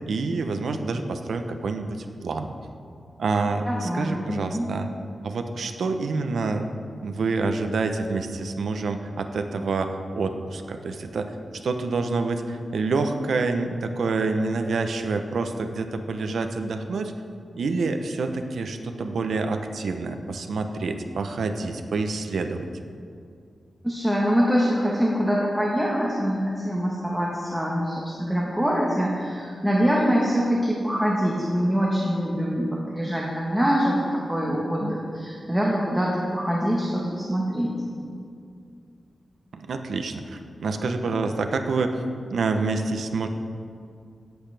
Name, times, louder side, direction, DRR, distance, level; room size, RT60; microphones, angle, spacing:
voice 1, 0.1-2.5 3.2-4.9 5.2-6.6 7.0-11.3 11.6-17.1 17.6-22.7 39.5-41.9 42.3-43.3, right 3 dB, 80° right, 6 dB, 0.8 m, -27 dB
voice 2, 3.7-4.7 23.8-37.8, equal, 5° right, -4 dB, 1.2 m, -24 dB
17.5 x 8.1 x 3.4 m, 2.3 s
wide cardioid pair, 135°, 0 cm